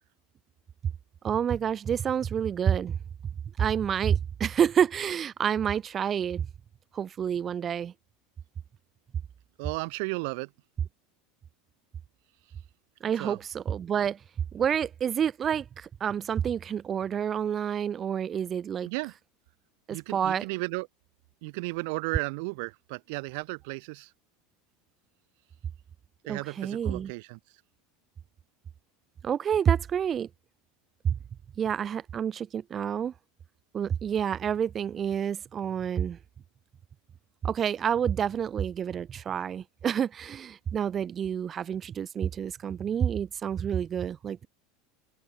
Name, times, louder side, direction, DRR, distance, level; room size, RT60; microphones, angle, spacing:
voice 1, 1.2-3.0 3.6-6.5 6.9-7.9 13.0-14.2 14.5-18.9 19.9-20.5 26.3-27.1 29.2-30.3 31.0-31.2 31.6-33.1 33.7-36.2 37.4-44.5, right 8 dB, 35° right, 1.5 m, -28 dB
voice 2, 9.6-10.5 13.2-13.4 18.8-19.1 19.9-20.9 21.4-24.1 26.3-27.4, right 29 dB, 65° right, 3.6 m, -34 dB
hypercardioid pair, 75°, 0 cm